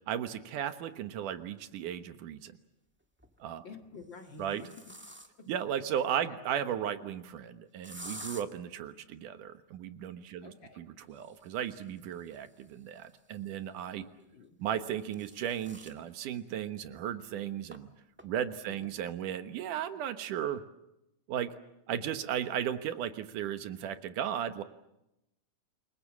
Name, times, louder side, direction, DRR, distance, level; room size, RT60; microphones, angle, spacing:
voice 1, 0.1-2.5 3.4-3.6 4.4-4.6 5.5-14.0 14.6-17.9 18.2-20.6 21.3-21.5 21.9-24.6, right 9 dB, 90° right, 10 dB, 2.8 m, -35 dB
sound 1, 1.5-1.6 3.0-3.4 4.0-5.6 7.8-8.4 11.0-13.7 14.7-16.0 16.5-16.6 16.9-17.0 17.7-17.8 18.2-18.6, right 1 dB, 10° right, 0.7 m, -50 dB
voice 2, 3.6-4.9 5.9-6.5 10.4-10.9 14.3-14.6 18.7-18.9, left 4 dB, 40° left, 5 dB, 2.4 m, -50 dB
28.5 x 22.0 x 7.4 m, 0.88 s
omnidirectional pair, 3.5 m